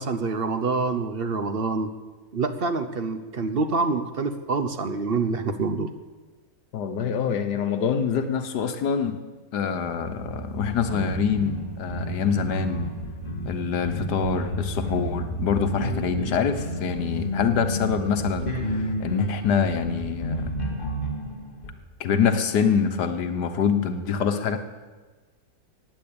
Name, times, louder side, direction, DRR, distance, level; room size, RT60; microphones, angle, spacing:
voice 1, 0.0-1.9 2.3-5.9, right 4 dB, 45° right, 9 dB, 0.9 m, -26 dB
voice 2, 6.7-9.2 9.5-12.9 13.4-20.5 22.0-24.6, left 6 dB, 80° left, 9 dB, 1.6 m, -25 dB
sound 1, 9.7-19.2, right 1 dB, 10° left, 2.6 m, -36 dB
sound 2, 10.7-21.7, left 1 dB, 30° left, 2.0 m, -32 dB
15.0 x 9.4 x 8.8 m, 1.3 s
omnidirectional pair, 1.7 m